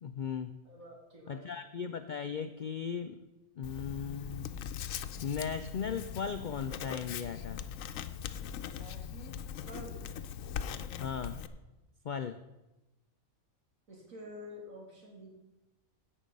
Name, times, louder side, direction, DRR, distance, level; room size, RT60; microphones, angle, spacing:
voice 1, 0.0-0.6 1.3-3.3 3.6-4.5 5.2-7.6 11.0-11.4 12.0-12.4, left 6 dB, 90° left, 10 dB, 0.4 m, -37 dB
voice 2, 0.6-1.5 8.6-10.0 13.9-15.3, equal, 75° right, -2 dB, 3.2 m, -49 dB
Writing, 3.6-11.5, left 8 dB, 75° left, 1.0 m, -40 dB
16.0 x 5.6 x 5.3 m, 1.0 s
omnidirectional pair, 1.4 m